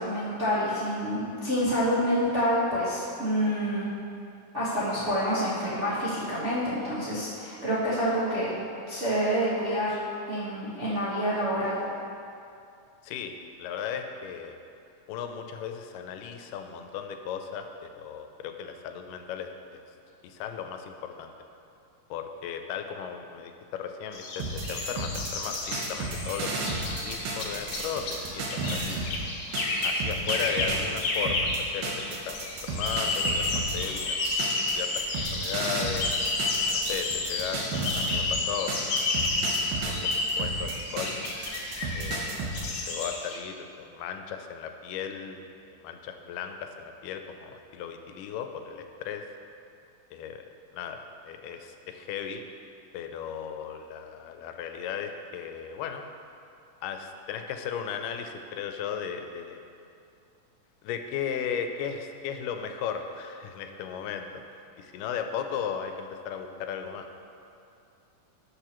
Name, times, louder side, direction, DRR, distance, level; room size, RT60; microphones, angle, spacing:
voice 1, 0.0-3.9 4.5-8.5 8.9-9.9 10.3-11.8, equal, 50° right, -11 dB, 0.8 m, -27 dB
voice 2, 13.0-14.6 15.1-19.8 20.2-21.3 22.1-29.0 29.8-34.5 34.7-35.0 35.3-36.1 36.7-39.0 39.4-39.5 39.8-40.0 40.4-41.1 41.9-42.5 42.9-45.4 45.7-49.2 50.1-50.5 50.7-51.0 51.3-52.4 52.9-56.0 56.8-59.6 60.8-64.3 64.8-67.1, left 7 dB, 85° left, 6 dB, 2.2 m, -36 dB
sound 1, 24.1-43.4, left 2 dB, 65° left, 1.6 m, -31 dB
sound 2, 24.4-29.2 29.5-38.3 38.7-42.6, right 3 dB, 85° right, 2.6 m, -33 dB
11.5 x 6.8 x 3.0 m, 2.5 s
omnidirectional pair, 3.7 m